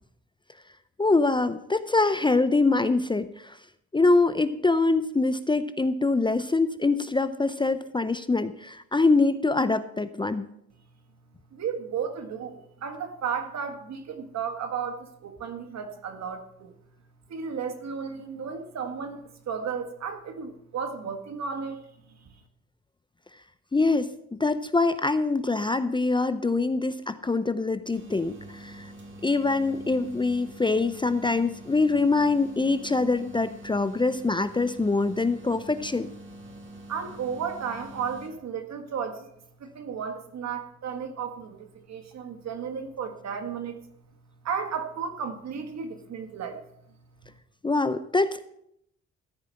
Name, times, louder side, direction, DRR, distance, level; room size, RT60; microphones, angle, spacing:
voice 1, 1.0-3.6 3.9-10.5 23.7-24.1 24.4-28.9 29.2-36.1 47.6-48.4, left 3 dB, 15° left, 12 dB, 0.5 m, -24 dB
voice 2, 11.5-16.7 17.3-21.9 36.9-39.3 39.6-43.8 44.4-46.6 47.2-47.3, right 6 dB, 60° right, 6 dB, 1.8 m, -34 dB
sound 1, 27.9-38.3, right 1 dB, 40° right, 2.8 m, -45 dB
14.0 x 4.9 x 7.7 m, 0.75 s
cardioid pair, 90°, 30 cm